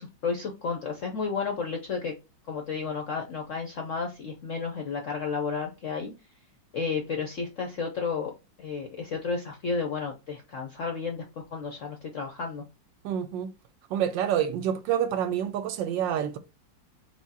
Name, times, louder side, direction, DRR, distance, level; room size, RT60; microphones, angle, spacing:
voice 1, 0.0-2.1 2.5-6.1 6.7-11.2 11.5-12.6, left 5 dB, 70° left, 0.7 m, -32 dB
voice 2, 13.0-13.5 13.9-16.4, right 9 dB, 75° right, 1.2 m, -27 dB
4.7 x 2.1 x 4.0 m
omnidirectional pair, 2.1 m